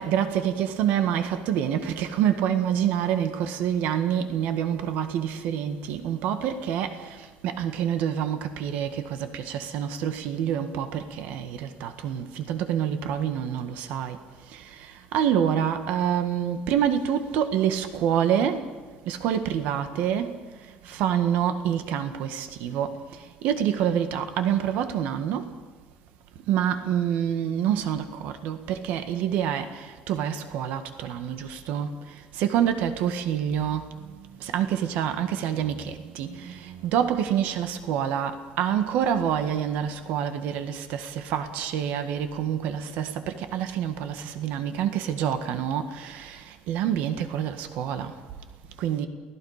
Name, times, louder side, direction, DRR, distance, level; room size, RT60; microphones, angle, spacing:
voice 1, 0.0-7.0 7.4-14.2 15.1-18.6 19.1-20.3 20.9-22.9 23.4-25.5 26.5-29.7 30.1-31.9 32.4-33.9 34.4-36.4 36.8-43.1 43.4-46.4 46.7-48.1 48.8-49.1, right 9 dB, 70° right, 1.7 m, -27 dB
29.0 x 17.5 x 5.0 m
cardioid pair, 160°, 3 cm